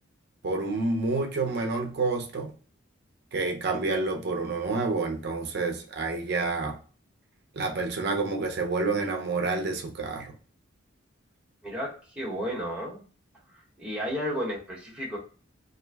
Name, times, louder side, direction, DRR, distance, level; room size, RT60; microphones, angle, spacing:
voice 1, 0.4-2.5 3.3-6.8 7.6-10.3, right 3 dB, 55° right, 3 dB, 0.5 m, -28 dB
voice 2, 11.6-13.0 13.8-15.2, equal, 5° right, -5 dB, 1.0 m, -32 dB
2.5 x 2.1 x 3.3 m, 0.38 s
head